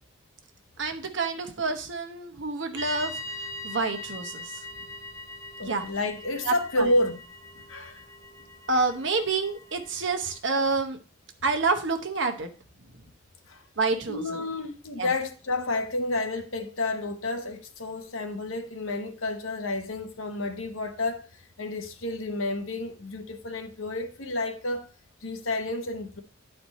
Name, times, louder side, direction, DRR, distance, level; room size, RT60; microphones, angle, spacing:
voice 1, 0.8-3.1 3.6-4.4 5.7-5.8 6.5-6.9 8.7-11.0 11.4-12.5 13.8-14.2 15.0-15.1, right 3 dB, 60° right, 1.0 m, -28 dB
sound 1, 2.7-10.4, left 1 dB, 15° left, 0.7 m, -41 dB
voice 2, 5.6-7.2 7.7-8.0 13.5-13.6 14.1-24.9 25.2-26.2, left 2 dB, 75° left, 1.0 m, -30 dB
10.0 x 4.4 x 4.1 m
head